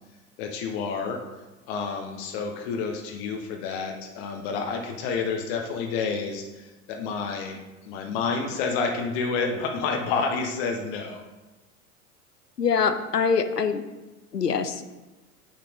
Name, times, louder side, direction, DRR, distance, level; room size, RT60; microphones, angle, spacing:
voice 1, 0.4-1.2 1.7-7.6 7.8-11.2, left 5 dB, 45° left, 3 dB, 1.0 m, -29 dB
voice 2, 12.6-13.8 14.3-14.9, left 6 dB, 85° left, 10 dB, 0.7 m, -24 dB
8.8 x 5.9 x 3.5 m, 1.1 s
figure-of-eight pair, 85°, 46 cm